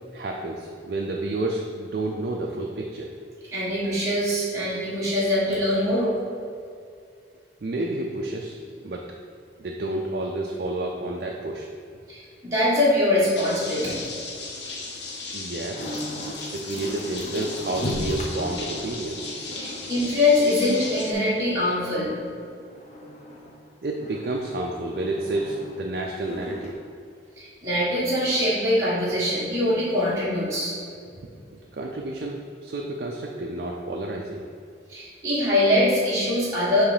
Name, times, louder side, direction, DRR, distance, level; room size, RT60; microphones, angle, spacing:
voice 1, 0.1-3.1 7.6-9.1 9.6-11.7 15.3-15.9 16.5-19.3 23.8-26.8 31.2-34.4, right 2 dB, 55° right, 0 dB, 0.4 m, -30 dB
voice 2, 3.5-6.2 12.1-14.1 19.5-22.2 27.4-30.8 34.9-36.8, left 1 dB, 15° right, -9 dB, 1.3 m, -23 dB
sound 1, 13.4-21.1, left 3 dB, 70° left, 0.9 m, -36 dB
sound 2, 15.8-23.6 24.0-26.7, equal, 35° left, 0.7 m, -37 dB
7.2 x 3.1 x 4.9 m, 2.4 s
head